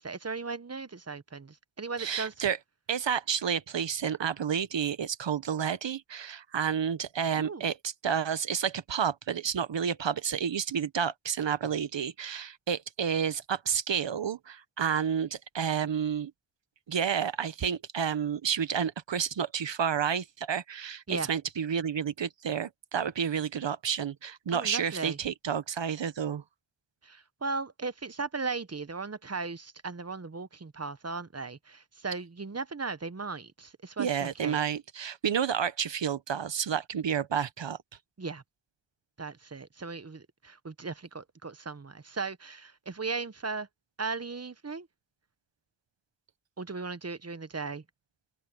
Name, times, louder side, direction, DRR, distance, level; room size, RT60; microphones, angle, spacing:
voice 1, 0.0-2.3 7.3-7.7 21.1-21.3 24.5-25.2 27.0-34.6 38.2-38.4 39.2-43.7 44.0-44.9 46.6-47.8, right 4 dB, 35° right, 1.0 m, -37 dB
voice 2, 2.0-2.6 2.9-16.3 16.9-26.4 34.0-37.8, right 7 dB, 85° right, 1.0 m, -30 dB
open air
cardioid pair, 45°, 43 cm